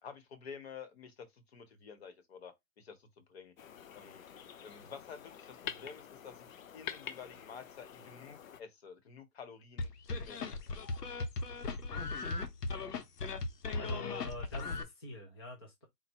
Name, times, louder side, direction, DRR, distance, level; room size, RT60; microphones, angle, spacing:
voice 1, 0.0-3.5 3.9-4.2 4.6-6.5 6.7-10.7, left 6 dB, 40° left, 1.3 m, -50 dB
sound 1, 3.6-8.6, left 8 dB, 55° left, 0.8 m, -47 dB
sound 2, 9.8-14.8, left 3 dB, 75° left, 1.4 m, -37 dB
voice 2, 13.8-15.9, left 2 dB, 15° left, 0.6 m, -45 dB
4.4 x 2.5 x 4.5 m
hypercardioid pair, 165°, 48 cm